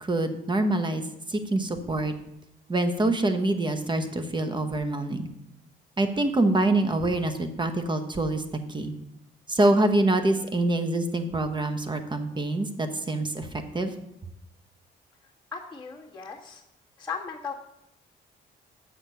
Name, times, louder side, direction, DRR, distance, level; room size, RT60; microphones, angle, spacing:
voice 1, 0.0-1.0 1.3-2.1 2.7-5.3 6.0-8.4 8.7-8.9 9.5-13.9, right 2 dB, 25° right, 9 dB, 1.0 m, -25 dB
voice 2, 15.5-16.6 17.0-17.5, left 5 dB, 10° left, -10 dB, 1.6 m, -36 dB
7.6 x 6.6 x 5.6 m, 0.82 s
cardioid pair, 90°, 20 cm